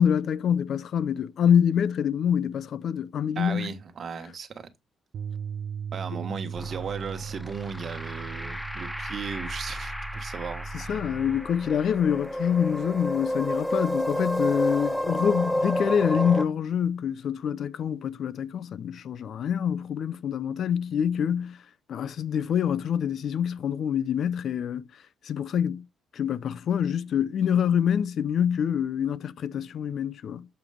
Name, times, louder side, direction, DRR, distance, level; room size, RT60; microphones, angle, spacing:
voice 1, 0.0-3.7 6.2-6.3 10.7-21.6 21.9-24.9 25.2-25.8 26.1-30.5, left 8 dB, 60° left, 0.5 m, -26 dB
voice 2, 3.3-4.7 5.9-11.1, right 6 dB, 50° right, 1.5 m, -36 dB
Bass guitar, 5.1-11.4, right 7 dB, 65° right, 0.4 m, -38 dB
sound 1, 6.6-16.4, equal, ahead, 0.4 m, -31 dB
8.1 x 4.9 x 3.5 m
cardioid pair, 100°, 0 cm